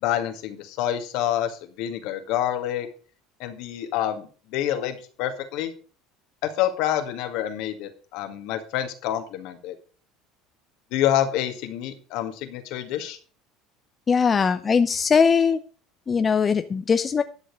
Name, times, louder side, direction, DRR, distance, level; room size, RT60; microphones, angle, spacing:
voice 1, 0.0-2.9 3.4-5.7 6.4-9.7 10.9-13.2, left 11 dB, 65° left, 8 dB, 2.0 m, -27 dB
voice 2, 14.1-15.6 16.1-17.2, left 6 dB, 30° left, 10 dB, 0.7 m, -20 dB
11.5 x 6.4 x 6.4 m, 0.39 s
hypercardioid pair, 75°, 0 cm